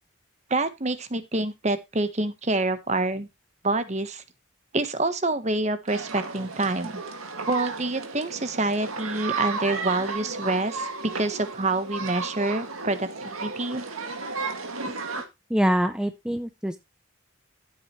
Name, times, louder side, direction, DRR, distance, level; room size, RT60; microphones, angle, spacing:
voice 1, 0.5-3.3 3.6-4.2 4.7-7.0 7.5-10.9 11.2-13.8, right 2 dB, 35° right, 11 dB, 1.1 m, -27 dB
sound 1, 5.9-15.2, right 4 dB, 90° right, 2.2 m, -33 dB
voice 2, 15.5-16.8, equal, 5° right, 9 dB, 0.5 m, -25 dB
13.0 x 8.3 x 3.1 m, 0.23 s
head